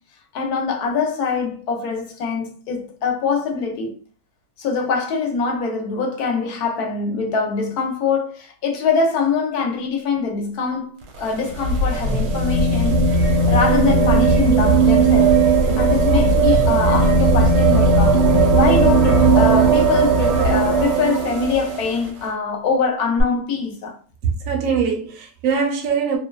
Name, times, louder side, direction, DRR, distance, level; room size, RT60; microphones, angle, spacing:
voice 1, 0.3-3.9 4.6-10.9 11.2-15.4 15.8-18.2 18.5-24.0, left 5 dB, 70° left, 1.1 m, -23 dB
sound 1, 11.0-22.0 23.2-23.3, right 3 dB, 80° right, 1.2 m, -16 dB
voice 2, 24.2-26.2, right 6 dB, 65° right, 0.8 m, -22 dB
2.8 x 2.2 x 2.2 m
omnidirectional pair, 1.8 m